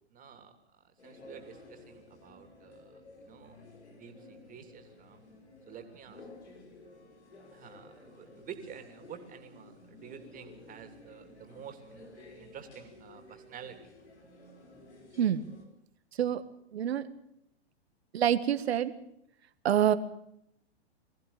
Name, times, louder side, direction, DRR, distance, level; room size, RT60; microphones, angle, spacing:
voice 1, 0.1-3.0 3.3-3.6 3.9-5.2 5.7-6.6 7.5-13.8, right 7 dB, 25° right, 7 dB, 3.1 m, -49 dB
sound 1, 1.0-15.6, left 2 dB, 85° left, 5.4 m, -53 dB
voice 2, 16.7-17.1 18.1-18.9 19.6-19.9, right 10 dB, 70° right, 13 dB, 1.7 m, -26 dB
21.5 x 15.0 x 8.8 m, 0.76 s
hypercardioid pair, 115°, 33 cm